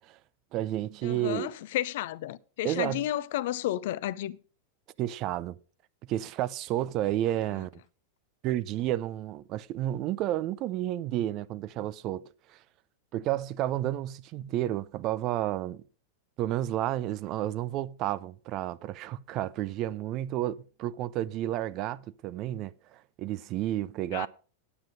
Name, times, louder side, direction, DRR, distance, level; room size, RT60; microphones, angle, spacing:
voice 1, 0.5-1.5 2.6-3.1 5.0-5.5 6.1-7.8 8.4-12.6 13.1-15.8 16.4-24.3, right 13 dB, 40° right, 0.5 m, -31 dB
voice 2, 1.0-4.4 24.1-24.3, left 14 dB, 55° left, 0.5 m, -32 dB
9.8 x 9.0 x 5.0 m
figure-of-eight pair, 90°, 0 cm